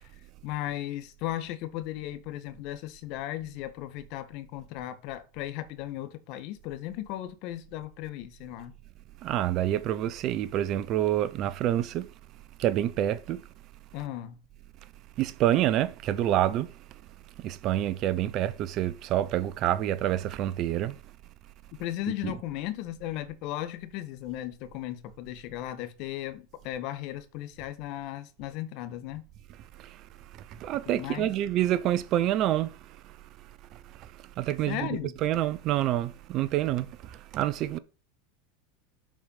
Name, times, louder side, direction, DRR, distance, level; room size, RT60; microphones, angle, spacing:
voice 1, 0.4-8.7 13.9-14.4 21.8-29.2 30.9-31.3 34.7-35.2, left 13 dB, 55° left, 1.5 m, -36 dB
voice 2, 9.2-12.1 12.6-13.4 15.2-16.7 17.4-21.0 22.2-22.3 30.6-32.7 34.4-34.9 35.2-37.8, right 12 dB, 50° right, 0.7 m, -27 dB
7.5 x 4.9 x 5.8 m
hypercardioid pair, 95°, 0 cm